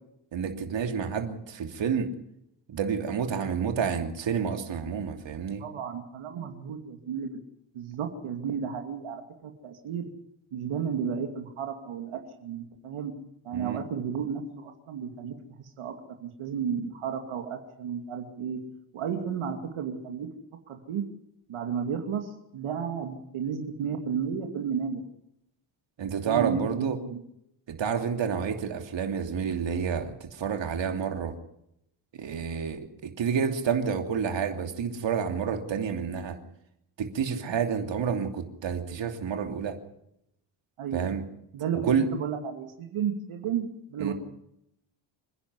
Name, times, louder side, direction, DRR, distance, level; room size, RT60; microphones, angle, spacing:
voice 1, 0.3-2.1 2.7-5.6 13.5-13.8 26.0-27.0 27.7-31.3 32.2-36.4 37.0-39.8 40.9-41.2 41.8-42.1 44.0-44.1, right 7 dB, 60° right, 5 dB, 3.1 m, -29 dB
voice 2, 5.6-7.4 7.7-10.1 10.5-13.1 13.4-15.9 16.2-18.6 18.9-20.3 20.7-21.0 21.5-25.0 26.2-27.2 40.8-41.1 41.5-44.1, right 7 dB, 80° right, 4 dB, 2.7 m, -33 dB
27.5 x 11.0 x 9.8 m, 0.79 s
cardioid pair, 105°, 49 cm